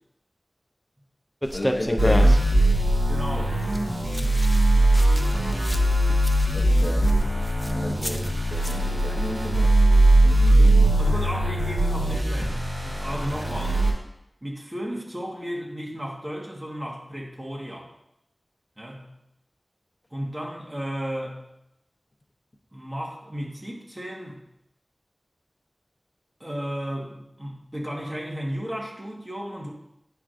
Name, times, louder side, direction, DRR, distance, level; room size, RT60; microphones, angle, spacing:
sound 1, 1.4-8.8, equal, 5° left, 0.5 m, -32 dB
voice 1, 1.5-2.5 6.5-7.1 7.7-10.9, left 1 dB, 50° left, 0 dB, 0.8 m, -33 dB
sound 2, 2.0-13.9, right 1 dB, 65° right, 2.5 m, -20 dB
voice 2, 3.1-3.6 11.0-13.8 14.4-17.9 18.8-19.1 20.1-21.4 22.7-24.4 26.4-29.7, equal, 20° right, -2 dB, 1.4 m, -34 dB
9.7 x 4.7 x 2.5 m, 0.81 s
wide cardioid pair, 65°, 0 cm